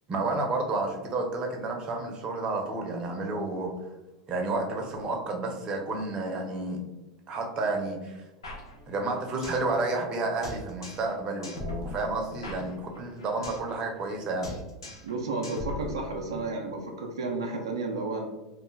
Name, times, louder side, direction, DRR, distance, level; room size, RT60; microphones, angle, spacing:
voice 1, 0.1-3.7 4.3-6.8 7.3-8.2 8.9-14.5, right 2 dB, 35° right, 2 dB, 0.7 m, -31 dB
sound 1, 8.4-9.7 10.0-10.1 10.4-11.1 11.4-13.7 14.0-14.2 14.4-15.1 15.4-16.4, left 2 dB, 85° left, 0.6 m, -40 dB
voice 2, 15.0-18.3, right 3 dB, 80° right, 1 dB, 0.4 m, -32 dB
2.4 x 2.2 x 3.0 m, 1.1 s
hypercardioid pair, 90°, 3 cm